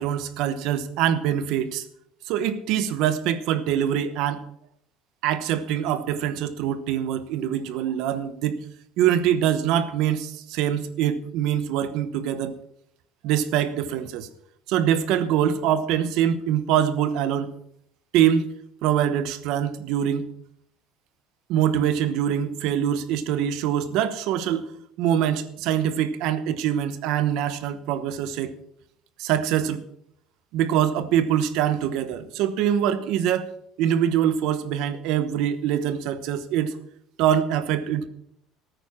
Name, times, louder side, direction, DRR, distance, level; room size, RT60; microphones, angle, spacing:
voice 1, 0.0-1.9 2.3-4.4 5.2-8.6 9.0-12.6 13.2-14.3 14.7-17.5 18.1-18.5 18.8-20.3 21.5-24.7 25.0-28.6 29.2-29.8 30.5-33.5 33.8-36.7 37.2-38.1, right 10 dB, 55° right, 14 dB, 1.0 m, -24 dB
14.0 x 9.1 x 6.1 m, 0.72 s
cardioid pair, 175°, 0 cm